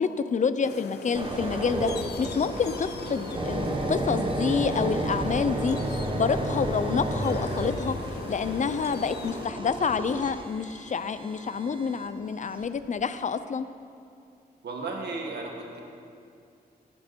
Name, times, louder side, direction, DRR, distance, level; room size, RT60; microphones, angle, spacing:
voice 1, 0.0-1.9 2.2-8.0 8.3-13.7, left 6 dB, 45° left, 12 dB, 0.6 m, -28 dB
sound 1, 0.6-9.5, left 5 dB, 85° left, 0.7 m, -40 dB
sound 2, 1.1-12.1 12.6-12.9, right 1 dB, 30° right, 1.5 m, -32 dB
sound 3, 1.2-8.8, left 1 dB, 20° left, 3.4 m, -45 dB
voice 2, 14.6-15.8, right 3 dB, 90° right, 0 dB, 2.0 m, -34 dB
17.5 x 10.0 x 4.5 m, 2.4 s
wide cardioid pair, 105°, 17 cm